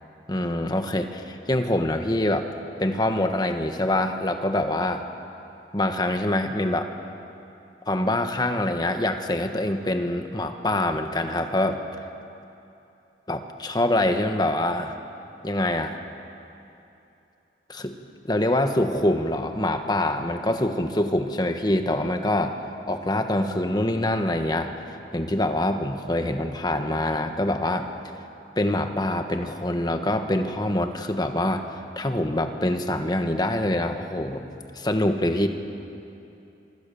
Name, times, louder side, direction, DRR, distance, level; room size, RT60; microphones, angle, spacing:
voice 1, 0.3-2.5 2.8-5.0 5.7-6.9 7.9-11.8 13.3-14.9 15.4-16.0 17.7-17.9 18.2-22.6 22.9-24.7 25.1-27.9 28.6-31.6 32.0-34.5 34.7-35.5, left 1 dB, 25° left, 6 dB, 1.4 m, -25 dB
26.5 x 24.5 x 7.1 m, 2.8 s
head